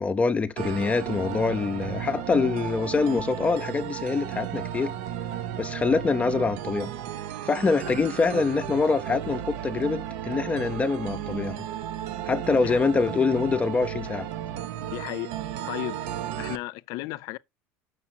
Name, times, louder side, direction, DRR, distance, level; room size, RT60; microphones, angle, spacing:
voice 1, 0.0-4.9 5.6-6.9 7.4-11.6 12.3-14.3, left 4 dB, 20° left, 0.5 m, -25 dB
sound 1, 0.6-16.6, right 11 dB, 85° right, 0.7 m, -34 dB
voice 2, 14.9-15.3 15.7-16.0 16.4-17.4, left 18 dB, 70° left, 0.5 m, -34 dB
7.2 x 6.5 x 4.3 m
supercardioid pair, 120°, 6 cm